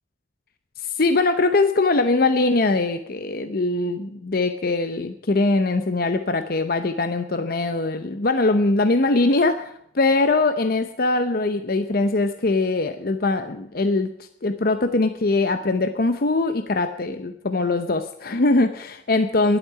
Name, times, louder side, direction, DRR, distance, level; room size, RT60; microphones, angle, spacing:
voice 1, 0.8-14.1 14.4-19.6, left 2 dB, 55° left, 9 dB, 0.8 m, -22 dB
11.0 x 8.5 x 9.5 m, 0.69 s
head